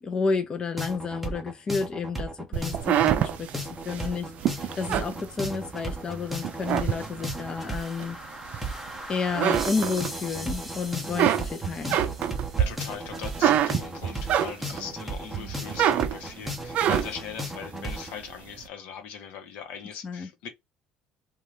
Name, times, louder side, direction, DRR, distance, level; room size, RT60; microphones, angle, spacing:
voice 1, 0.0-8.2 9.1-12.0 20.0-20.3, left 4 dB, 30° left, 0.5 m, -31 dB
sound 1, 0.8-18.1, right 1 dB, 5° right, 0.7 m, -35 dB
sound 2, 2.5-5.9 6.4-7.5 8.0-9.0 9.3-10.5 10.9-14.9 15.3-17.3, right 10 dB, 60° right, 0.3 m, -26 dB
voice 2, 12.6-20.5, left 8 dB, 75° left, 0.8 m, -40 dB
2.5 x 2.3 x 3.2 m
cardioid pair, 110°, 3 cm